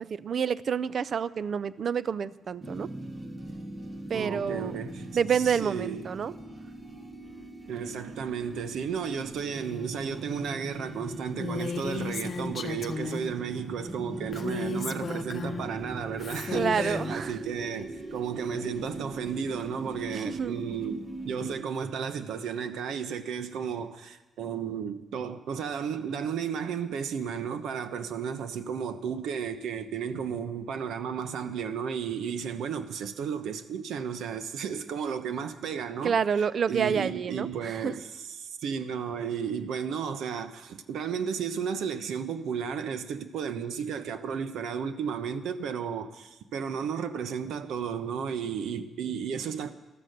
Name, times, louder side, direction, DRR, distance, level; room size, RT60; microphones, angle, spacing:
voice 1, 0.0-2.9 4.1-4.7 5.1-6.3 16.5-17.4 20.2-20.5 36.0-37.9, right 7 dB, 40° right, 0.4 m, -28 dB
sound 1, 2.6-21.5, right 1 dB, 20° right, 1.3 m, -40 dB
voice 2, 4.1-5.1 5.3-6.1 7.7-36.1 36.7-49.7, right 7 dB, 80° right, 1.0 m, -33 dB
Female speech woman speaking, 11.4-13.3 14.3-15.7 16.2-17.2, left 4 dB, 35° left, 0.8 m, -34 dB
14.5 x 13.0 x 6.6 m
wide cardioid pair, 175°, 0 cm